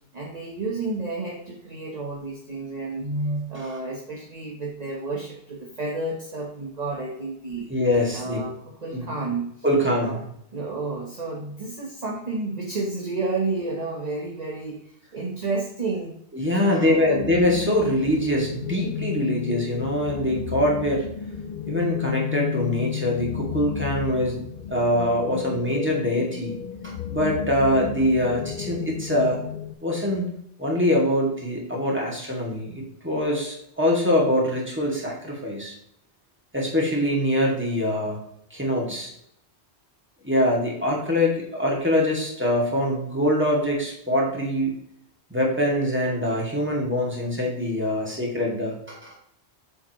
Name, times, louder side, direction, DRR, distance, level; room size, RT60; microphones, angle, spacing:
voice 1, 0.1-7.7 8.1-9.5 10.0-10.2 10.5-16.1 16.5-17.2, right 3 dB, 40° right, -1 dB, 1.3 m, -31 dB
voice 2, 7.7-8.4 8.9-9.1 9.6-10.2 16.3-21.1 21.7-24.4 24.7-26.5 26.8-29.4 29.8-30.3 30.6-35.7 36.5-38.2 38.5-39.1 40.2-44.7 45.3-49.2, left 1 dB, 10° right, -3 dB, 2.4 m, -24 dB
sound 1, 17.0-29.7, left 9 dB, 55° left, 0.5 m, -32 dB
7.9 x 7.1 x 3.1 m, 0.72 s
omnidirectional pair, 1.1 m